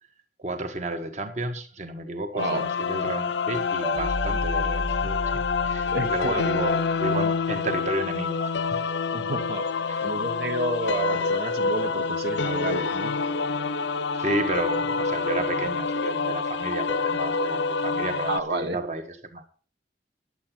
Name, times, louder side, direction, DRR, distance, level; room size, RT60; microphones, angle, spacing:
voice 1, 0.4-5.3 5.6-8.8 9.9-10.1 14.1-19.5, right 2 dB, 40° right, 6 dB, 1.5 m, -32 dB
voice 2, 2.3-2.7 5.9-6.4 9.1-13.2 18.3-18.8, right 2 dB, 65° right, 5 dB, 1.4 m, -30 dB
sound 1, 2.4-18.4, left 4 dB, 80° left, 0.6 m, -27 dB
sound 2, 3.8-7.0, equal, 15° right, 0.7 m, -34 dB
11.0 x 8.2 x 6.0 m, 0.41 s
head